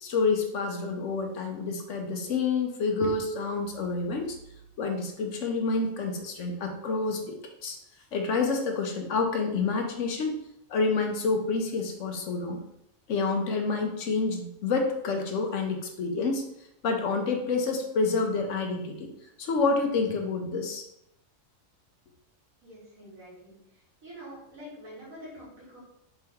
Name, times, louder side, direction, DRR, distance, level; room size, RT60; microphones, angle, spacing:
voice 1, 0.0-4.3 4.8-7.4 7.6-7.8 8.1-10.3 10.7-12.6 13.1-16.4 16.8-19.1 19.4-20.8, left 4 dB, 70° left, 3 dB, 1.0 m, -28 dB
voice 2, 22.6-23.6 24.0-25.8, equal, 85° right, -6 dB, 2.4 m, -46 dB
4.5 x 2.9 x 3.5 m, 0.80 s
omnidirectional pair, 1.4 m